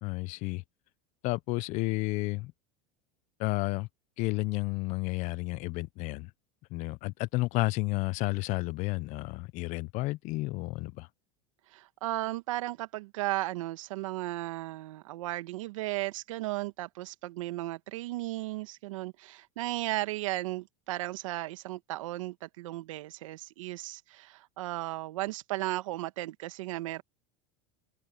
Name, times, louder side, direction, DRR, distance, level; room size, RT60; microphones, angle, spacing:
voice 1, 0.0-0.6 1.2-2.5 3.4-3.9 4.2-6.3 6.7-11.1, left 22 dB, 50° left, 0.6 m, -31 dB
voice 2, 11.7-27.0, right 17 dB, 85° right, 1.8 m, -35 dB
supercardioid pair, 135°, 16 cm